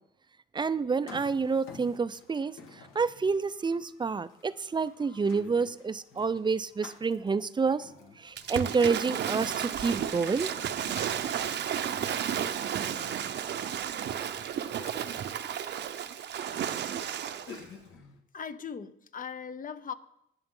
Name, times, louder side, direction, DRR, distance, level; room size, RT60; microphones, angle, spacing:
voice 1, 0.5-2.6 2.9-7.9 8.2-10.5, right 5 dB, 20° right, 0.5 m, -28 dB
sound 1, 1.0-18.2, left 5 dB, 70° left, 1.8 m, -53 dB
Waves surf / Splash splatter, 8.4-17.6, right 9 dB, 55° right, 0.8 m, -33 dB
voice 2, 18.3-19.9, left 7 dB, 40° left, 0.8 m, -39 dB
19.5 x 6.9 x 3.8 m
cardioid pair, 85°, 21 cm